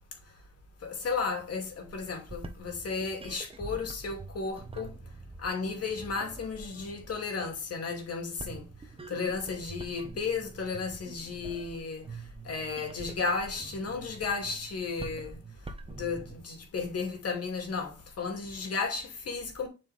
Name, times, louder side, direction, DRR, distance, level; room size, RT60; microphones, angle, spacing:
voice 1, 0.8-5.0 5.4-8.6 9.1-12.1 12.4-15.4 16.0-19.7, left 4 dB, 55° left, 2.5 m, -34 dB
sound 1, 2.1-16.4, right 3 dB, 20° right, 1.1 m, -46 dB
7.1 x 4.5 x 3.3 m
cardioid pair, 90°, 30 cm